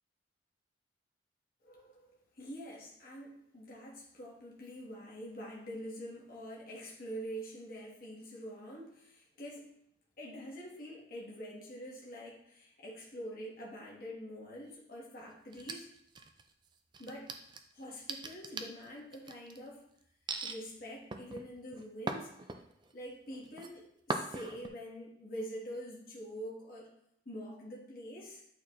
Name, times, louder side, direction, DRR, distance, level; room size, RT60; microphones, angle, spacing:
voice 1, 1.6-9.7 10.2-15.9 17.0-17.3 17.7-19.8 20.4-22.3 22.9-26.9 27.2-28.4, equal, 50° left, -4 dB, 1.5 m, -45 dB
sound 1, 15.5-16.5 16.9-19.6 20.3-20.6 21.1-22.9 23.3-23.7 24.1-24.7, right 3 dB, 25° right, 0.4 m, -40 dB
8.5 x 4.2 x 3.1 m, 0.76 s
head